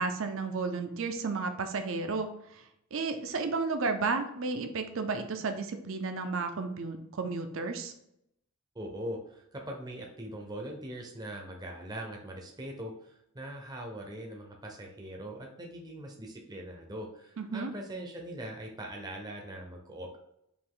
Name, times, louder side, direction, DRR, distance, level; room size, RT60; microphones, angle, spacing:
voice 1, 0.0-2.3 2.9-7.9 17.4-17.7, right 4 dB, 60° right, 7 dB, 0.6 m, -32 dB
voice 2, 8.7-20.2, right 1 dB, 20° right, 0 dB, 0.6 m, -41 dB
5.2 x 2.6 x 3.7 m, 0.78 s
head